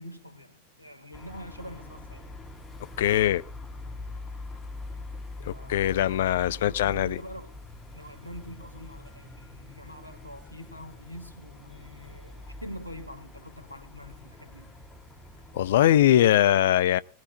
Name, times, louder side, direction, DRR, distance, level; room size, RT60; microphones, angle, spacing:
voice 1, 0.0-2.3 5.5-7.6 7.9-14.8, equal, 90° right, 1.9 m, -45 dB
sound 1, 1.1-16.1, left 2 dB, 20° left, 4.2 m, -44 dB
voice 2, 3.0-3.4 5.4-7.2 15.5-17.0, left 12 dB, 55° left, 0.6 m, -21 dB
20.0 x 19.5 x 2.4 m
figure-of-eight pair, 90°, 0 cm